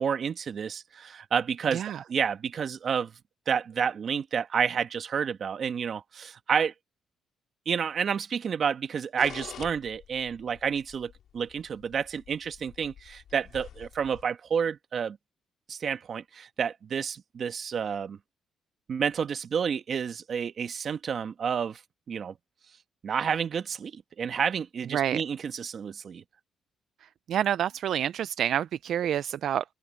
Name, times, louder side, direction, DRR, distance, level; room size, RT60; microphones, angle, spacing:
voice 1, 0.0-1.8 2.1-3.1 3.5-6.7 7.6-15.2 15.7-18.2 18.9-21.8 22.1-22.3 23.0-26.2, right 7 dB, 55° right, 1.7 m, -30 dB
sound 1, 9.2-14.2, left 10 dB, 70° left, 4.5 m, -47 dB
voice 2, 27.3-29.6, right 10 dB, 70° right, 0.4 m, -28 dB
open air
cardioid pair, 90°, 0 cm